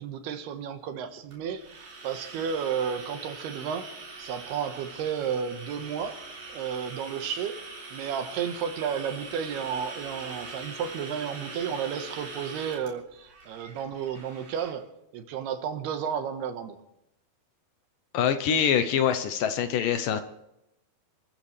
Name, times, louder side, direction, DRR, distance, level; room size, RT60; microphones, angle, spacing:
voice 1, 0.0-3.9 4.2-6.2 6.5-7.6 7.9-14.9 15.1-16.8, right 7 dB, 90° right, 3.3 m, -32 dB
sound 1, 1.3-14.7, right 3 dB, 50° right, 4.8 m, -43 dB
voice 2, 18.1-20.2, left 8 dB, 70° left, 2.3 m, -24 dB
28.5 x 14.5 x 3.3 m
omnidirectional pair, 4.5 m